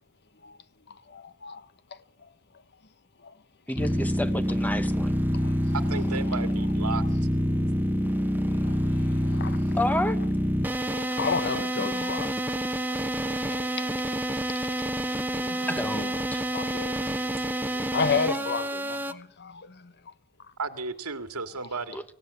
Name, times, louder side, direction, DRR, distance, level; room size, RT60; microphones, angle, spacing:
voice 1, 1.1-1.7 3.2-3.3 5.3-5.5 8.5-9.8 10.8-12.5 13.3-14.0 14.5-14.9 15.4-16.2 16.5-19.9, left 5 dB, 50° left, 1.2 m, -33 dB
voice 2, 3.7-5.2 9.8-10.3 15.7-16.4 21.9-22.0, left 1 dB, 5° left, 1.0 m, -30 dB
sound 1, 3.8-19.1, equal, 10° right, 1.2 m, -27 dB
voice 3, 5.7-7.0 20.6-22.0, right 4 dB, 85° right, 2.2 m, -33 dB
25.0 x 16.5 x 9.6 m
head